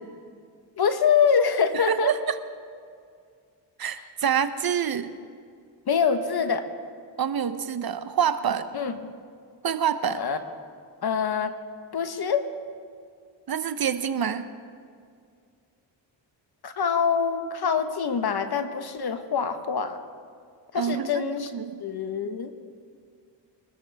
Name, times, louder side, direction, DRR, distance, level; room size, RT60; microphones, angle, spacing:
voice 1, 0.8-2.1 5.9-6.7 8.7-8.9 10.1-10.4 11.0-11.5 11.9-12.4 16.6-20.0 20.7-21.5 21.8-22.5, left 6 dB, 55° left, 8 dB, 1.3 m, -25 dB
voice 2, 1.9-2.4 3.8-5.1 7.2-8.7 9.6-10.2 13.5-14.5 20.7-21.1 21.5-21.8, right 8 dB, 55° right, 11 dB, 0.9 m, -26 dB
24.0 x 13.5 x 3.5 m, 2.2 s
cardioid pair, 65°, 44 cm